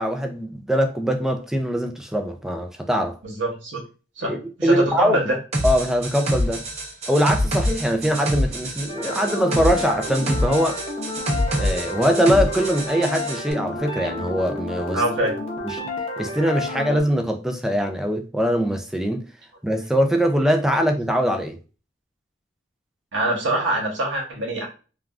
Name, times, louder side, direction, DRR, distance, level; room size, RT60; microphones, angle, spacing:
voice 1, 0.0-3.2 4.2-5.2 5.6-6.6 7.1-10.8 11.6-15.0 15.7-15.8 16.2-19.2 19.6-21.6, equal, 5° right, 0.3 m, -22 dB
voice 2, 3.2-3.8 4.2-5.4 14.9-15.3 23.1-24.7, right 1 dB, 65° right, 1.1 m, -24 dB
sound 1, 5.5-13.4, equal, 35° right, 0.6 m, -26 dB
sound 2, 8.9-17.0, left 2 dB, 30° left, 0.7 m, -31 dB
3.3 x 2.3 x 2.4 m
head